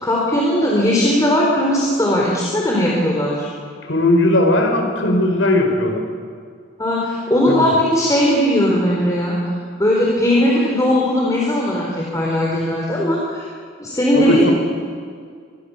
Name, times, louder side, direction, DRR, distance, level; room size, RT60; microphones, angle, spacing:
voice 1, 0.0-3.5 6.8-9.5 9.8-13.5 13.8-14.5, equal, 20° left, -3 dB, 4.1 m, -18 dB
voice 2, 3.8-6.0 7.5-7.7 14.1-14.5, left 1 dB, 80° left, 3 dB, 5.1 m, -17 dB
26.5 x 21.0 x 7.2 m, 2.1 s
head